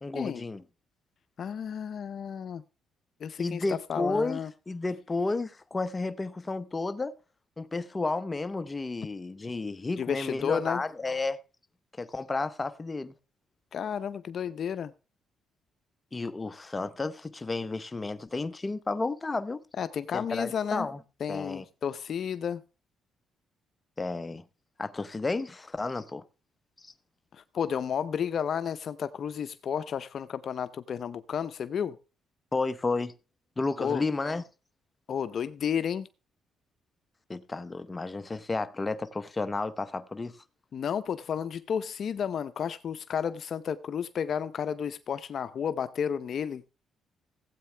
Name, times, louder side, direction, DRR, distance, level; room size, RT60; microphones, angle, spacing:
voice 1, 0.0-0.6 3.4-4.4 4.7-7.1 7.6-11.4 12.0-13.1 16.1-19.6 20.1-21.0 21.3-21.6 24.0-24.4 24.8-26.2 32.5-33.1 33.6-34.4 37.3-40.3, left 3 dB, 25° left, 0.8 m, -32 dB
voice 2, 1.4-2.6 3.2-3.6 3.9-4.5 10.0-10.8 13.7-14.9 19.8-20.9 21.2-22.6 27.3-32.0 33.8-34.0 35.1-36.1 40.7-46.7, left 7 dB, 55° left, 0.6 m, -32 dB
16.0 x 8.4 x 3.3 m
cardioid pair, 90°, 0 cm